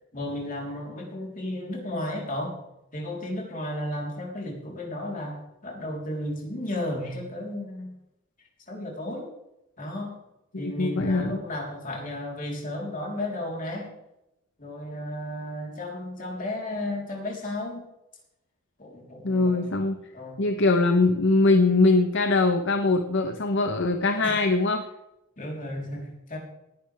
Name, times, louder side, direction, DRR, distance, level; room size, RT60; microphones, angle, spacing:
voice 1, 0.1-2.6 2.9-7.9 8.7-9.3 9.8-10.2 10.6-13.9 14.6-17.8 18.8-19.7 20.1-20.4 24.2-24.5 25.4-26.4, left 1 dB, 40° left, -1 dB, 3.6 m, -33 dB
voice 2, 10.5-11.4 19.2-20.0 20.4-24.8, left 3 dB, 60° left, 6 dB, 0.9 m, -22 dB
18.5 x 10.5 x 3.4 m, 0.89 s
head